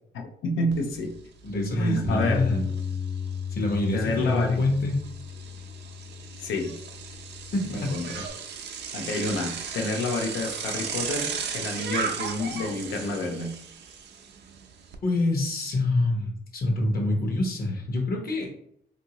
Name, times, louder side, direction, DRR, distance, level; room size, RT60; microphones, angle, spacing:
voice 1, 0.1-1.2 1.8-2.5 3.9-4.6 6.4-6.8 7.7-8.2 8.9-13.5, left 2 dB, 75° left, 3 dB, 0.7 m, -29 dB
Bicycle, 0.7-0.8 1.2-15.0, right 6 dB, 60° right, 0.5 m, -36 dB
voice 2, 1.4-2.6 3.5-5.0 7.5-7.9 15.0-18.5, left 2 dB, 50° left, 1 dB, 1.0 m, -26 dB
Bass guitar, 2.1-8.3, left 6 dB, 10° right, 0.4 m, -35 dB
2.7 x 2.6 x 2.9 m, 0.69 s
cardioid pair, 90°, 20 cm